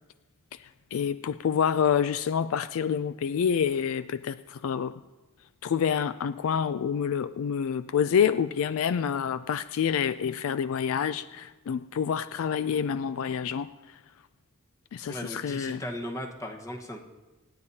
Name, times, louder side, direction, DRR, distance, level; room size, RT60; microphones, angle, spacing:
voice 1, 0.9-4.9 5.6-13.7 14.9-15.8, left 7 dB, 65° left, 13 dB, 0.3 m, -27 dB
voice 2, 15.1-17.0, equal, 15° left, 2 dB, 1.2 m, -37 dB
25.5 x 9.9 x 2.8 m, 1.2 s
head